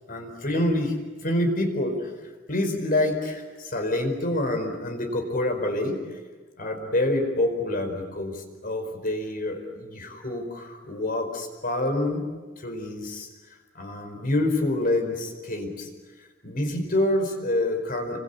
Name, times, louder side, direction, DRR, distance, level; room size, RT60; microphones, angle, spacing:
voice 1, 0.1-0.9 1.2-2.1 2.5-6.0 6.6-12.3 12.6-13.3 13.7-15.9 16.4-18.2, left 1 dB, 50° left, 5 dB, 5.0 m, -27 dB
28.5 x 24.5 x 8.4 m, 1.4 s
head